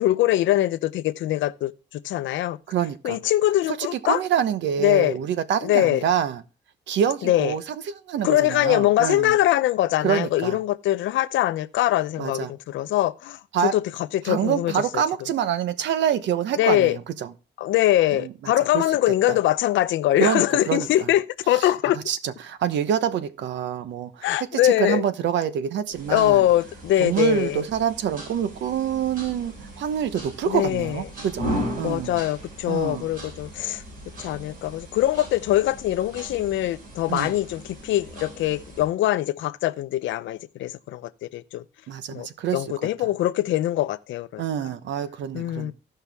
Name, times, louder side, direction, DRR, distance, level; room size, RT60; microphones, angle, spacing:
voice 1, 0.0-2.6 3.0-4.2 4.8-5.2 5.6-6.0 7.2-7.6 8.2-13.8 14.1-15.0 16.6-17.0 17.6-22.0 24.2-25.0 26.1-27.6 30.4-31.0 31.8-33.8 34.2-41.6 42.1-42.3 42.5-44.4 45.3-45.7, left 14 dB, 90° left, 0.6 m, -23 dB
voice 2, 2.7-3.2 3.9-6.4 6.9-7.7 8.1-9.4 10.0-10.6 12.2-12.5 13.5-13.7 14.3-17.3 18.1-18.8 19.3-19.4 20.2-21.1 21.5-24.3 24.6-26.5 27.0-31.5 31.8-32.2 32.7-33.1 37.1-37.3 41.9-42.6 44.4-45.7, right 9 dB, 75° right, 1.0 m, -26 dB
sound 1, 25.9-38.9, equal, 45° right, 5.7 m, -37 dB
16.0 x 5.7 x 3.5 m
cardioid pair, 150°, 19 cm